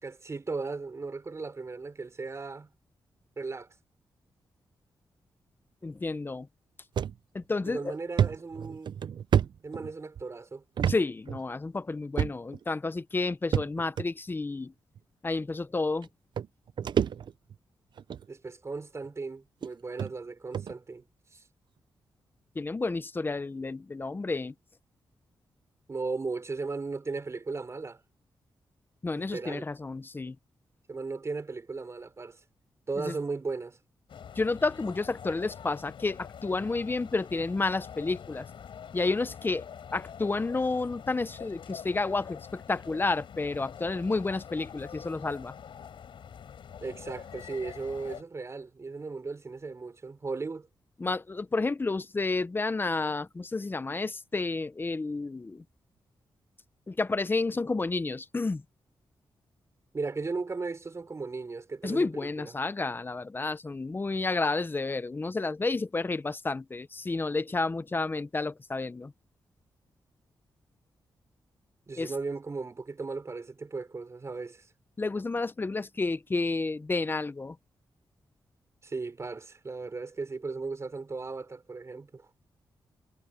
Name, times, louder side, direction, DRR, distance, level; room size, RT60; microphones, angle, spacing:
voice 1, 0.0-2.7 3.4-3.7 7.6-8.9 9.6-10.6 18.3-21.1 21.3-21.4 25.9-28.0 29.2-29.7 30.9-32.4 32.9-33.8 46.8-50.7 59.9-62.5 71.9-74.7 78.8-82.3, right 4 dB, 35° right, 4.1 m, -36 dB
voice 2, 5.8-6.5 7.3-7.9 10.9-14.7 15.2-16.1 22.5-24.5 29.0-30.4 33.0-33.1 34.4-38.5 38.9-39.6 39.9-45.5 51.0-55.6 56.9-58.6 61.8-69.1 72.0-72.1 75.0-77.6, left 3 dB, 25° left, 0.8 m, -30 dB
sound 1, 7.0-7.1 7.6-7.7 8.2-10.2 10.8-11.0 11.3-11.4 12.2-12.6 13.5-14.1 14.9-15.0 16.0-16.1 16.4-17.5 18.0-18.3 19.0-19.1 19.6-19.7 20.0-20.1 20.5-20.7, right 8 dB, 60° right, 0.5 m, -28 dB
sound 2, 34.1-48.2, left 8 dB, 75° left, 7.3 m, -45 dB
wide cardioid pair, 105°, 9 cm